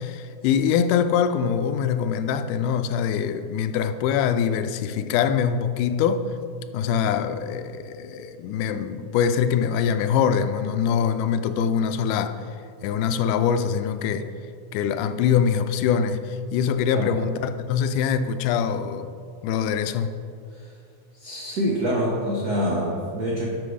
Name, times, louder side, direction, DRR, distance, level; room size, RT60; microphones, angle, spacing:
voice 1, 0.0-6.3 6.7-12.4 12.8-14.3 14.7-19.1 19.4-20.2, left 7 dB, 85° left, 10 dB, 2.1 m, -23 dB
voice 2, 21.2-23.5, equal, 85° right, -3 dB, 0.8 m, -26 dB
11.0 x 6.7 x 5.0 m, 2.3 s
omnidirectional pair, 3.6 m